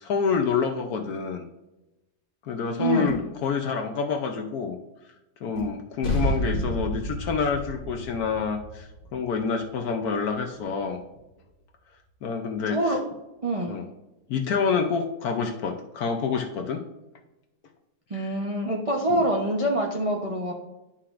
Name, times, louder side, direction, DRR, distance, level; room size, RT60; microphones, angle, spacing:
voice 1, 0.0-1.5 2.4-4.8 5.4-11.0 12.2-12.9 13.7-13.8 14.3-16.8 18.1-18.3 19.1-19.2, left 5 dB, 65° left, 4 dB, 1.0 m, -27 dB
voice 2, 2.8-3.2 12.7-13.0 13.4-13.8 18.1-20.5, right 1 dB, 45° right, -1 dB, 0.4 m, -25 dB
sound 1, 3.1-3.5 5.5-5.9, right 3 dB, 75° right, 3.6 m, -38 dB
sound 2, 6.0-10.8, equal, 30° left, 1.3 m, -30 dB
11.0 x 5.7 x 2.5 m, 0.99 s
omnidirectional pair, 2.1 m